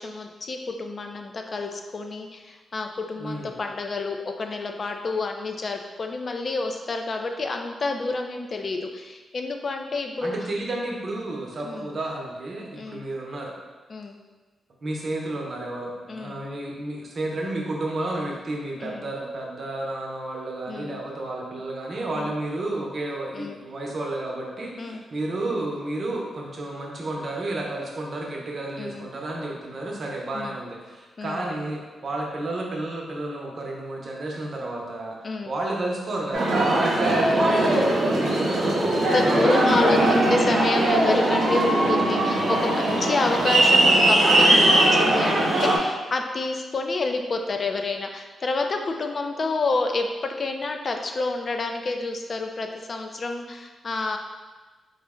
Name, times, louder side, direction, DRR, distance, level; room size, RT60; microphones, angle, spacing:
voice 1, 0.0-10.3 11.6-11.9 12.7-13.0 13.9-14.2 16.1-16.4 18.8-19.1 20.7-21.0 22.1-22.3 23.3-23.6 24.8-25.0 28.8-29.1 30.3-30.6 31.2-31.5 35.2-35.5 37.1-37.8 39.1-54.2, left 3 dB, 50° left, 4 dB, 0.4 m, -29 dB
voice 2, 3.2-3.6 10.2-13.5 14.8-40.2, right 2 dB, 55° right, -1 dB, 0.7 m, -31 dB
Aircraft, 36.3-45.8, right 1 dB, 90° right, 0.9 m, -20 dB
3.8 x 2.1 x 3.6 m, 1.3 s
cardioid pair, 80°, 0 cm